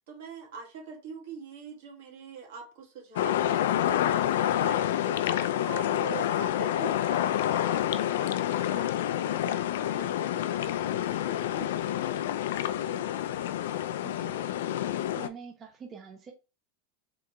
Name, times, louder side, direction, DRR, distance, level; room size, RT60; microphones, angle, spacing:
voice 1, 0.0-12.1 12.8-13.0, right 5 dB, 70° right, 1.6 m, -45 dB
sound 1, 3.2-15.3, left 11 dB, 80° left, 0.3 m, -28 dB
voice 2, 14.0-14.4 15.2-16.3, right 6 dB, 20° right, 0.5 m, -45 dB
3.8 x 3.4 x 3.0 m
supercardioid pair, 160°, 0 cm